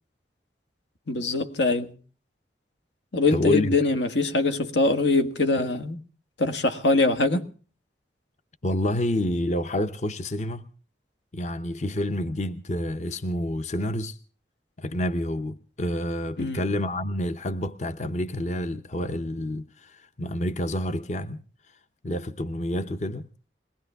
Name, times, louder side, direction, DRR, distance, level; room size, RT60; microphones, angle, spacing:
voice 1, 1.1-1.9 3.1-6.0 6.4-7.5 16.4-16.6, left 3 dB, 90° left, 1.6 m, -23 dB
voice 2, 3.3-3.7 8.6-10.7 11.3-14.2 14.8-21.4 22.0-23.3, left 1 dB, 40° left, 0.7 m, -28 dB
22.0 x 18.5 x 3.5 m
head